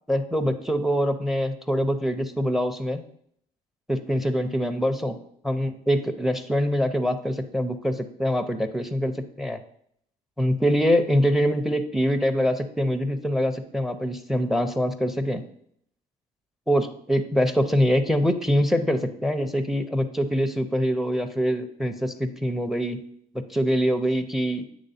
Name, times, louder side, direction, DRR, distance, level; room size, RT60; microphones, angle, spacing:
voice 1, 0.1-3.0 3.9-5.2 5.4-9.6 10.4-15.4 16.7-23.0 23.3-24.6, equal, ahead, 9 dB, 0.5 m, -24 dB
9.0 x 3.1 x 4.2 m, 0.68 s
cardioid pair, 110°, 17 cm